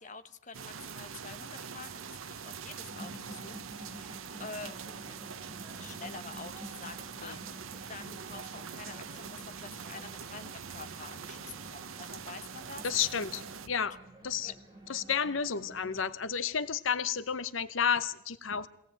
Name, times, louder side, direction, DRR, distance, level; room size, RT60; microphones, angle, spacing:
voice 1, 0.0-5.0 5.8-12.9 13.7-13.9 14.4-14.5, left 4 dB, 35° left, 9 dB, 1.1 m, -48 dB
sound 1, 0.5-13.7, right 6 dB, 90° right, 0.9 m, -44 dB
sound 2, 2.9-16.1, right 2 dB, 20° right, 4.8 m, -50 dB
voice 2, 12.8-14.0 14.2-14.5 14.9-18.7, left 7 dB, 80° left, 15 dB, 0.8 m, -31 dB
23.5 x 17.5 x 8.9 m, 0.76 s
head